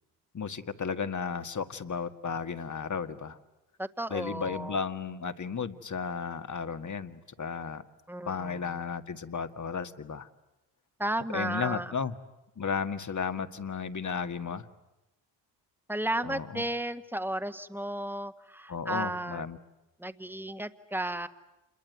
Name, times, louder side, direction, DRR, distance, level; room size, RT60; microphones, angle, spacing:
voice 1, 0.3-3.4 4.1-7.8 8.3-10.3 11.3-12.2 12.6-14.7 16.2-16.6 18.7-19.6, left 6 dB, 40° left, 10 dB, 1.8 m, -34 dB
voice 2, 3.8-4.8 8.1-8.8 11.0-11.9 15.9-19.4 20.0-21.3, right 1 dB, 5° right, 9 dB, 1.7 m, -34 dB
27.5 x 22.0 x 9.4 m, 0.99 s
supercardioid pair, 55°, 46 cm